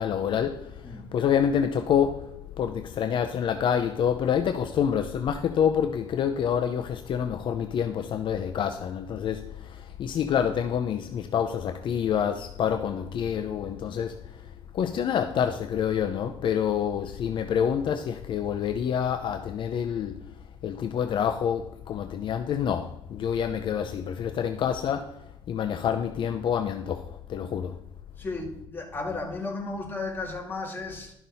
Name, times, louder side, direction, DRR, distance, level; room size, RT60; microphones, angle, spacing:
voice 1, 0.0-14.5 14.7-20.3 20.6-27.8, left 8 dB, 65° left, 0.6 m, -27 dB
voice 2, 28.2-31.1, left 3 dB, 20° left, 2.1 m, -34 dB
12.0 x 5.9 x 4.1 m
cardioid pair, 130°, 9 cm